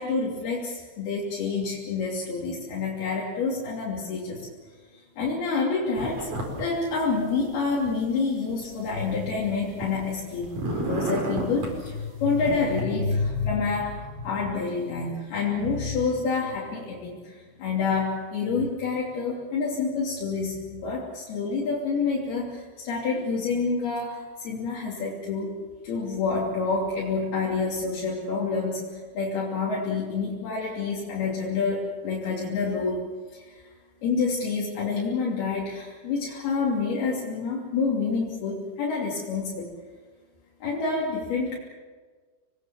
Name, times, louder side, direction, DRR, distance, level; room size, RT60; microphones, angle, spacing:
voice 1, 0.0-4.5 4.9-6.3 6.6-25.6 25.8-33.0 33.3-33.6 34.0-39.7 40.6-41.6, left 4 dB, 70° left, -4 dB, 4.9 m, -28 dB
sound 1, 6.0-6.6 6.9-7.9 8.5-10.1 10.4-11.8 12.4-12.8, right 1 dB, 50° right, 6.0 m, -32 dB
26.5 x 20.5 x 7.2 m, 1.5 s
omnidirectional pair, 4.6 m